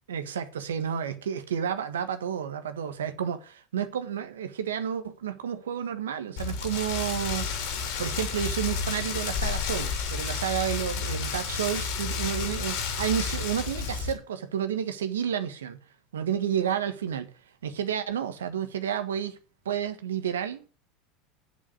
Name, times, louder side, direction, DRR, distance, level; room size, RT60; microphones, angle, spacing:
voice 1, 0.1-7.5 8.0-15.8 16.1-17.3 17.6-19.4 19.6-20.7, right 9 dB, 85° right, 1.5 m, -31 dB
Rain, 6.4-14.1, left 6 dB, 65° left, 3.4 m, -31 dB
8.1 x 8.0 x 8.1 m
hypercardioid pair, 85°, 0 cm